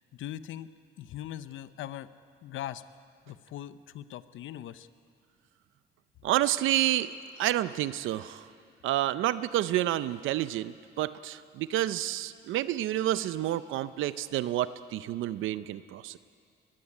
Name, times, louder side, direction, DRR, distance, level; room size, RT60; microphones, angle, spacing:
voice 1, 0.1-0.7 1.0-2.1 2.4-2.8 3.3-4.9, left 12 dB, 80° left, 14 dB, 0.8 m, -40 dB
voice 2, 6.2-7.1 7.4-8.4 8.8-16.2, right 13 dB, 85° right, 15 dB, 0.6 m, -29 dB
21.0 x 15.5 x 9.8 m, 2.3 s
cardioid pair, 90°, 20 cm